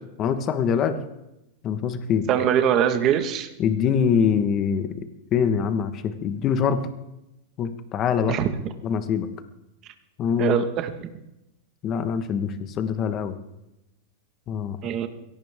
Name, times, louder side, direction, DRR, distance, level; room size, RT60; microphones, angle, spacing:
voice 1, 0.2-1.0 1.6-2.3 3.6-4.9 5.3-6.9 7.6-8.3 8.8-9.3 10.2-10.6 11.8-13.3 14.5-14.8, left 7 dB, 30° left, 9 dB, 1.4 m, -24 dB
voice 2, 2.3-3.5 8.3-8.5 10.4-11.1 14.8-15.1, right 9 dB, 35° right, 7 dB, 1.6 m, -22 dB
22.0 x 17.5 x 3.7 m, 0.91 s
supercardioid pair, 145°, 0 cm